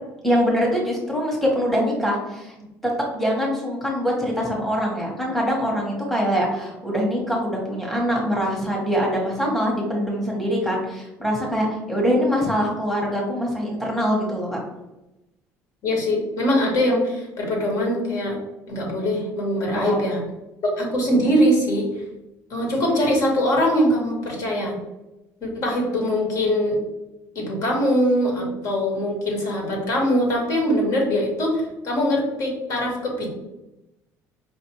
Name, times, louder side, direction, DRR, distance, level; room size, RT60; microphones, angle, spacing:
voice 1, 0.2-2.5 2.8-14.6 19.7-20.0, equal, ahead, -3 dB, 1.0 m, -23 dB
voice 2, 15.8-18.4 18.7-20.2 20.8-21.9 22.5-24.8 25.4-26.8 27.3-33.3, equal, 60° left, -1 dB, 1.3 m, -22 dB
4.9 x 2.5 x 2.9 m, 0.97 s
cardioid pair, 120°, 6 cm